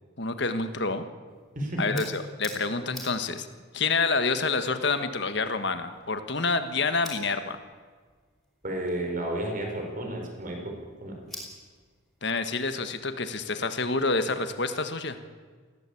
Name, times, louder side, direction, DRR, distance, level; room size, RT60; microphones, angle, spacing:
voice 1, 0.2-1.0 1.8-3.5 3.7-7.6 12.2-15.2, left 3 dB, 55° left, 9 dB, 1.5 m, -28 dB
sound 1, 1.3-13.6, equal, ahead, 5.6 m, -50 dB
voice 2, 1.5-2.0 8.6-10.7 11.0-11.2, right 1 dB, 40° right, 2 dB, 4.6 m, -32 dB
20.5 x 17.0 x 8.6 m, 1.5 s
head